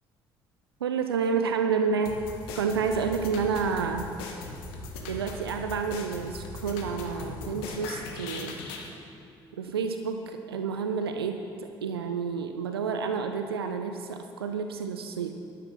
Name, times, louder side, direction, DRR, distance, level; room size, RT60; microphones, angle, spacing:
voice 1, 0.8-2.2 2.6-4.1 5.1-8.5 9.6-15.3, right 5 dB, 80° right, 6 dB, 0.5 m, -29 dB
sound 1, 2.0-8.9, left 3 dB, 65° left, 1.3 m, -39 dB
12.0 x 11.0 x 5.9 m, 2.7 s
figure-of-eight pair, 50°, 13 cm